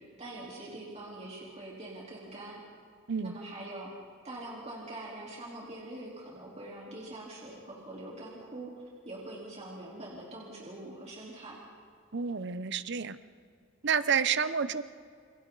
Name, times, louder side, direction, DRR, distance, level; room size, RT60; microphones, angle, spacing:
voice 1, 0.0-2.6 3.2-3.9 4.2-8.7 9.0-11.6, right 2 dB, 30° right, -5 dB, 3.7 m, -44 dB
voice 2, 12.1-13.2 13.8-14.8, right 6 dB, 55° right, 13 dB, 0.8 m, -29 dB
29.5 x 28.5 x 4.0 m, 2.3 s
head